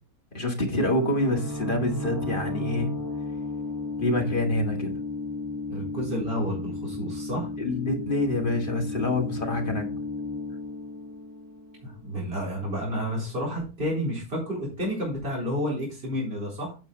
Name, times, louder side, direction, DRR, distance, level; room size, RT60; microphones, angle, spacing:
voice 1, 0.3-2.9 4.0-4.9 7.6-9.9, left 1 dB, 35° left, 2 dB, 2.1 m, -26 dB
sound 1, 0.8-12.3, left 2 dB, 15° right, 1.1 m, -34 dB
voice 2, 5.7-7.5 11.8-16.8, equal, 40° right, -4 dB, 4.4 m, -30 dB
9.2 x 7.2 x 4.0 m, 0.32 s
omnidirectional pair, 1.6 m